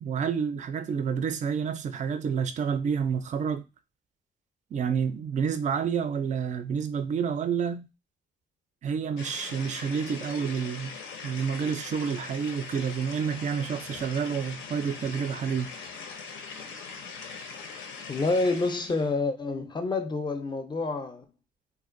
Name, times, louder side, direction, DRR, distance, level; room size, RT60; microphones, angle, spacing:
voice 1, 0.0-3.6 4.7-7.9 8.8-10.9 11.2-15.7, right 6 dB, 40° right, 0.4 m, -29 dB
sound 1, 9.2-19.1, left 5 dB, 85° left, 0.6 m, -41 dB
voice 2, 18.1-21.3, left 3 dB, 25° left, 0.4 m, -28 dB
2.5 x 2.1 x 2.5 m
cardioid pair, 90°, 20 cm